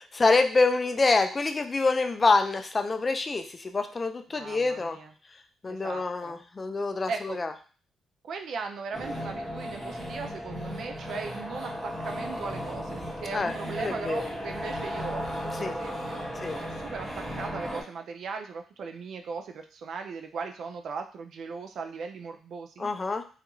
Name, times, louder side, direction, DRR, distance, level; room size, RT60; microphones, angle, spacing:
voice 1, 0.1-5.0 5.6-7.5 13.3-13.5 13.8-14.3 15.6-15.7 16.4-16.6 22.8-23.2, left 3 dB, 30° left, 7 dB, 0.3 m, -26 dB
voice 2, 4.3-5.1 5.7-6.4 7.1-7.4 8.2-15.3 15.6-17.1 17.4-22.9, right 5 dB, 65° right, 5 dB, 0.3 m, -38 dB
sound 1, 8.9-17.8, equal, 5° right, 1.1 m, -35 dB
2.4 x 2.3 x 2.9 m, 0.39 s
cardioid pair, 90°, 0 cm